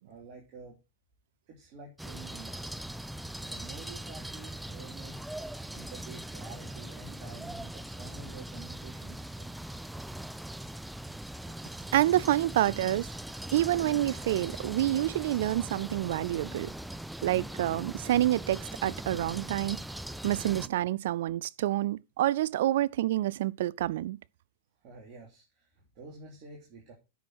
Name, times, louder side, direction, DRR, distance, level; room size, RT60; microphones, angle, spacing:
voice 1, 0.0-0.8 1.5-2.9 3.4-5.4 5.7-9.7 24.8-26.9, right 4 dB, 50° right, 3.2 m, -49 dB
sound 1, 2.0-20.7, right 1 dB, 5° right, 0.4 m, -41 dB
voice 2, 11.9-13.1 13.5-16.7 17.2-19.8 20.2-24.2, right 14 dB, 70° right, 0.5 m, -28 dB
9.3 x 6.2 x 6.2 m
hypercardioid pair, 110°, 0 cm